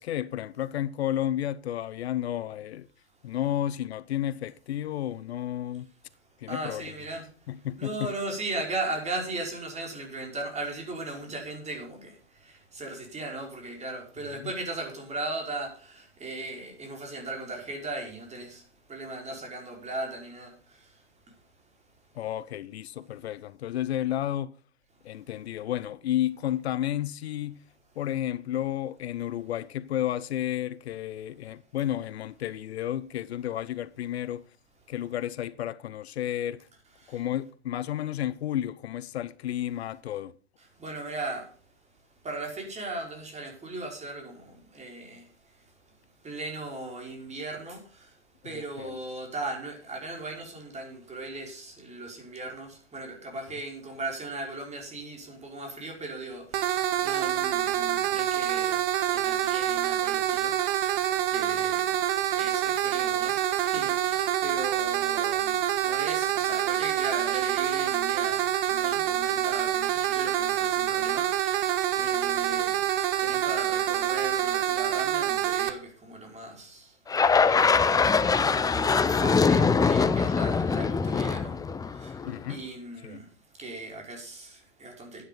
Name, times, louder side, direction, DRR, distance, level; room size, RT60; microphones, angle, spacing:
voice 1, 0.0-2.9 3.2-5.9 6.4-6.9 7.5-8.1 14.4-14.5 22.1-24.5 25.0-27.6 28.0-34.5 34.9-36.7 37.1-40.3 48.5-49.0 82.2-82.6 83.0-83.2, left 12 dB, 70° left, 0.7 m, -32 dB
voice 2, 6.2-22.1 25.1-25.2 37.0-37.2 40.6-85.2, right 2 dB, 20° right, 5.4 m, -38 dB
sound 1, 56.5-75.7, right 12 dB, 55° right, 1.5 m, -26 dB
sound 2, 77.1-82.4, left 5 dB, 10° left, 0.7 m, -23 dB
11.5 x 9.7 x 5.8 m
figure-of-eight pair, 95°, 34 cm